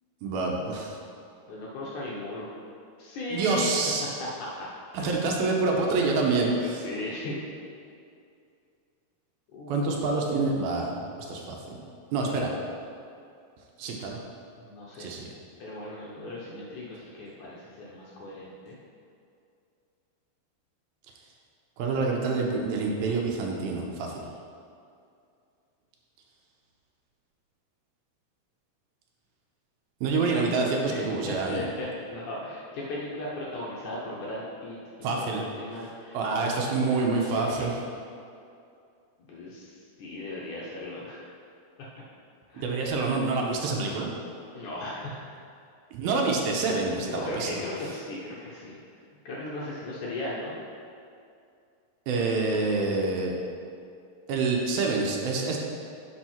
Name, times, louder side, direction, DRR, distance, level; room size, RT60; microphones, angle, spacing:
voice 1, 0.2-1.0 3.3-4.0 4.9-6.8 9.7-10.9 11.3-11.8 12.1-12.5 13.8-14.2 15.0-15.3 21.8-24.1 30.0-31.6 35.0-35.4 36.1-37.7 42.5-44.1 45.9-47.6 52.1-53.4 54.3-55.6, right 3 dB, 75° right, 0 dB, 2.6 m, -27 dB
voice 2, 1.5-2.5 3.0-3.7 4.2-4.7 5.0-5.3 6.6-7.4 9.5-9.9 14.6-15.1 15.6-18.8 30.3-30.4 30.8-37.7 39.2-41.2 42.5-42.8 44.5-45.2 47.1-48.8 49.3-50.5, left 2 dB, 65° left, -5 dB, 2.0 m, -37 dB
11.0 x 5.6 x 4.4 m, 2.5 s
omnidirectional pair, 4.5 m